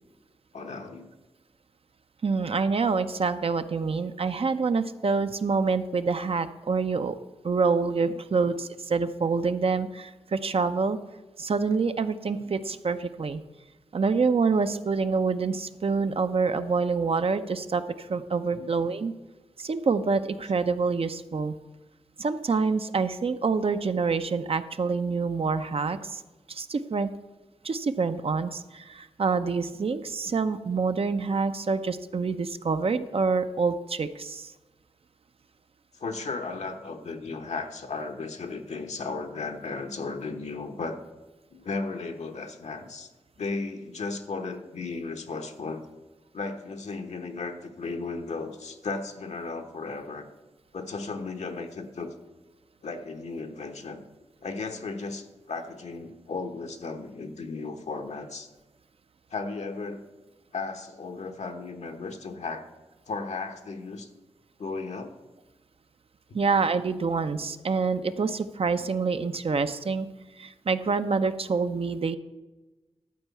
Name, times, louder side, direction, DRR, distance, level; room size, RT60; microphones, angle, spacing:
voice 1, 0.5-1.1 8.4-8.5 18.5-18.7 35.9-41.0 41.5-43.1 43.4-45.8 46.3-50.3 50.7-52.1 52.8-54.1 54.4-58.5 59.3-60.0 60.5-62.7 63.1-64.1 64.6-65.1 66.3-66.5, left 3 dB, 70° left, 5 dB, 1.2 m, -35 dB
voice 2, 2.2-7.2 7.4-11.0 11.4-13.4 13.9-19.1 19.6-21.6 22.2-26.2 26.5-27.1 27.6-34.5 66.3-70.1 70.4-72.2, right 4 dB, 55° right, 10 dB, 0.6 m, -26 dB
12.5 x 4.6 x 8.3 m, 1.1 s
cardioid pair, 60°, 12 cm